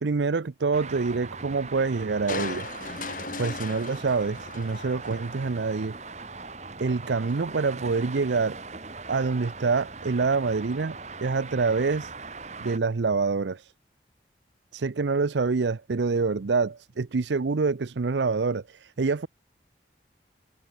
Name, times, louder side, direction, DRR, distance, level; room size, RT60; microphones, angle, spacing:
voice 1, 0.0-2.7 3.4-6.0 6.8-8.6 9.1-12.1 12.6-13.7 14.7-19.3, right 4 dB, 80° right, 0.6 m, -26 dB
Traffic noise roadway noise, 0.7-12.8, right 4 dB, 40° right, 2.0 m, -41 dB
Crushing, 2.3-5.7 6.1-6.2, left 4 dB, 50° left, 2.7 m, -37 dB
head